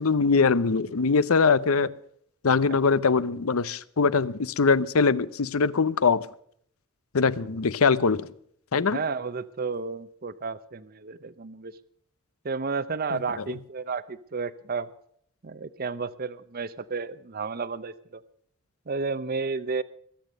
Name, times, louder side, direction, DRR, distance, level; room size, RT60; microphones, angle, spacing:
voice 1, 0.0-1.9 2.4-6.3 7.1-8.3 8.7-9.0 13.1-13.2, left 4 dB, 85° left, 0.7 m, -22 dB
voice 2, 8.9-11.8 12.4-14.9 15.4-18.2 18.9-19.8, right 4 dB, 45° right, 0.6 m, -32 dB
22.0 x 9.1 x 6.5 m
head